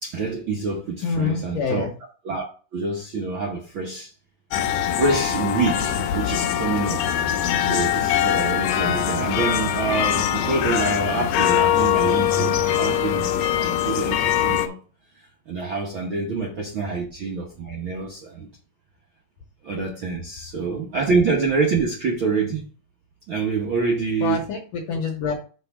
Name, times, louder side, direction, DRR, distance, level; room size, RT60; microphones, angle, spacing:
voice 1, 0.0-1.9 2.2-4.1 4.8-7.1 7.6-14.8 15.5-18.5 19.6-22.7 23.3-24.4, right 4 dB, 65° right, 1.3 m, -26 dB
voice 2, 1.0-1.9 24.2-25.3, left 5 dB, 70° left, 1.7 m, -26 dB
sound 1, 4.5-14.7, left 10 dB, 85° left, 2.2 m, -22 dB
5.7 x 3.7 x 5.9 m
omnidirectional pair, 3.8 m